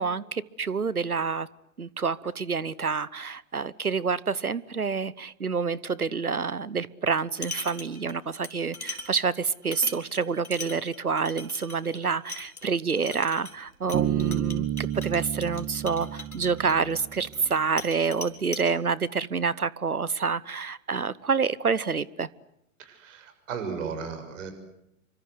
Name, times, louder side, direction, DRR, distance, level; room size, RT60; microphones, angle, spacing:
voice 1, 0.0-1.5 1.8-22.3, right 5 dB, 85° right, 22 dB, 1.1 m, -28 dB
sound 1, 7.1-8.1 8.4-17.5 17.8-18.7, left 2 dB, 85° left, 3.9 m, -40 dB
Bass guitar, 13.9-17.4, right 12 dB, 25° right, 1.1 m, -30 dB
voice 2, 22.8-24.5, right 6 dB, 60° right, 7 dB, 7.1 m, -35 dB
28.5 x 25.0 x 8.0 m, 0.80 s
figure-of-eight pair, 95°, 43 cm